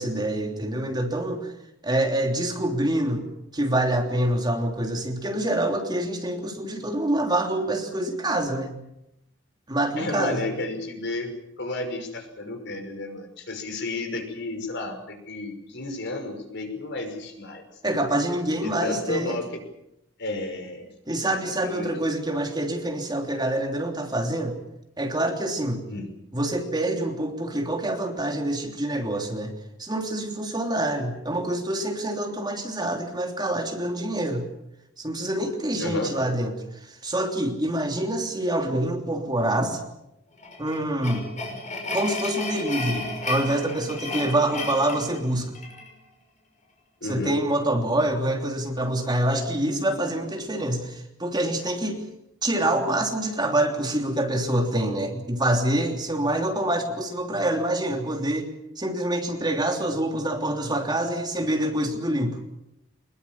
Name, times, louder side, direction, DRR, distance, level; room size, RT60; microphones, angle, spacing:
voice 1, 0.0-1.5 1.8-3.3 3.5-8.8 9.7-10.4 17.8-19.4 21.1-24.6 25.0-25.8 26.3-29.5 29.8-34.5 35.0-36.5 36.8-39.8 40.6-41.3 41.9-45.5 47.1-52.0 52.4-58.5 58.8-62.4, right 1 dB, 20° right, 3 dB, 3.2 m, -26 dB
voice 2, 10.0-11.3 11.6-17.6 18.6-19.5 20.2-20.9 21.6-22.0 25.9-26.1 35.8-36.1 47.0-47.4 49.6-50.0, left 2 dB, 65° left, 5 dB, 5.8 m, -32 dB
sound 1, 40.4-45.9, left 2 dB, 40° left, 5.9 m, -33 dB
24.5 x 21.0 x 7.3 m, 0.84 s
head